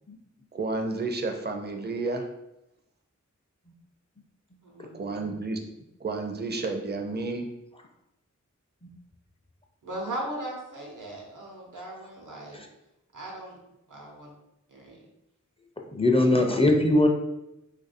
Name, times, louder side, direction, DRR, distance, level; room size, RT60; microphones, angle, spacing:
voice 1, 0.5-2.2 4.9-5.6 6.0-7.5, right 3 dB, 35° right, 4 dB, 0.5 m, -31 dB
voice 2, 4.6-5.3 9.8-12.6 13.1-13.5 13.9-14.3 14.7-15.1, right 1 dB, 90° right, -1 dB, 0.9 m, -38 dB
voice 3, 15.9-17.1, left 1 dB, 20° left, 2 dB, 0.5 m, -21 dB
2.9 x 2.6 x 4.1 m, 0.88 s
wide cardioid pair, 55°, 30 cm